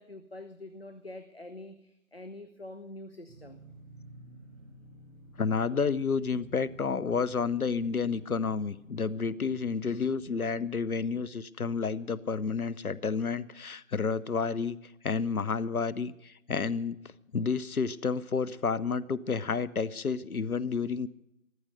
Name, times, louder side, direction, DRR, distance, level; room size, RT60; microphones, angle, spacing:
voice 1, 0.0-3.6, left 1 dB, 45° left, 8 dB, 0.9 m, -45 dB
sound 1, 3.3-10.4, right 1 dB, 15° right, 7.7 m, -52 dB
voice 2, 5.4-14.8 15.0-17.0 17.3-21.1, left 5 dB, 80° left, 18 dB, 1.0 m, -30 dB
14.5 x 14.0 x 6.5 m, 0.82 s
figure-of-eight pair, 180°, 43 cm